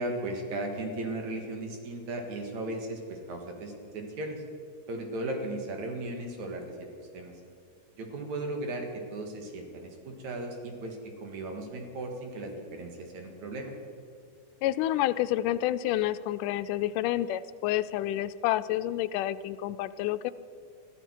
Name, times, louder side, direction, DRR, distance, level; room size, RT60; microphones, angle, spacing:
voice 1, 0.0-4.4 4.9-7.3 8.0-13.7, right 2 dB, 65° right, 3 dB, 3.1 m, -36 dB
voice 2, 14.6-20.3, left 14 dB, 85° left, 14 dB, 2.1 m, -29 dB
21.5 x 14.5 x 4.6 m, 2.4 s
omnidirectional pair, 3.6 m